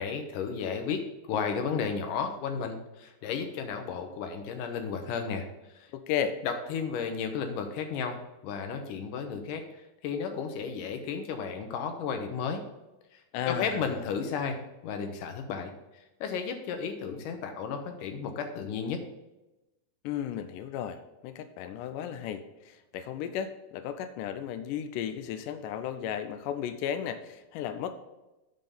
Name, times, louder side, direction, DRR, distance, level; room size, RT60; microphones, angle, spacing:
voice 1, 0.0-5.9 6.4-12.6 13.1-19.0, left 6 dB, 70° left, 5 dB, 2.3 m, -33 dB
voice 2, 5.9-6.3 13.3-14.0 20.0-27.9, left 9 dB, 90° left, 9 dB, 1.9 m, -34 dB
9.1 x 3.8 x 6.7 m, 1.0 s
omnidirectional pair, 4.3 m